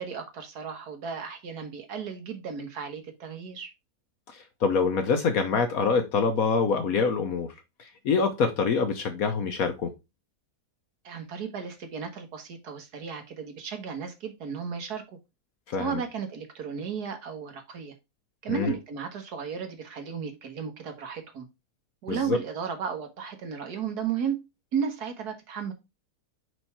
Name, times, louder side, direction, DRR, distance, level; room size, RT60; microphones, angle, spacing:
voice 1, 0.0-3.7 11.0-15.0 15.8-17.9 18.4-21.5 22.0-24.4 24.7-25.7, right 6 dB, 75° right, 1.8 m, -34 dB
voice 2, 4.3-7.5 7.8-9.9 15.7-16.0 18.5-18.7 22.1-22.4, left 5 dB, 65° left, 1.2 m, -25 dB
5.3 x 4.8 x 4.3 m
omnidirectional pair, 1.7 m